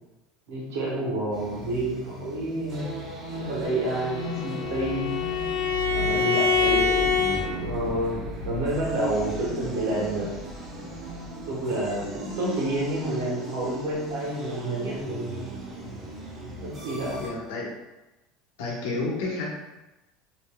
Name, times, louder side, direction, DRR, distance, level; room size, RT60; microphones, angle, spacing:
voice 1, 0.5-2.9 3.4-5.1 5.9-7.2 7.6-10.3 11.5-15.5 16.6-17.2, right 1 dB, 80° right, -4 dB, 1.1 m, -29 dB
sound 1, 1.3-17.3, right 1 dB, 35° right, 0.8 m, -36 dB
Bowed string instrument, 3.9-7.4, left 5 dB, 70° left, 0.5 m, -25 dB
voice 2, 17.2-17.7 18.6-19.5, left 3 dB, 90° left, -2 dB, 0.9 m, -30 dB
3.3 x 2.8 x 2.2 m, 1.0 s
supercardioid pair, 125°, 0 cm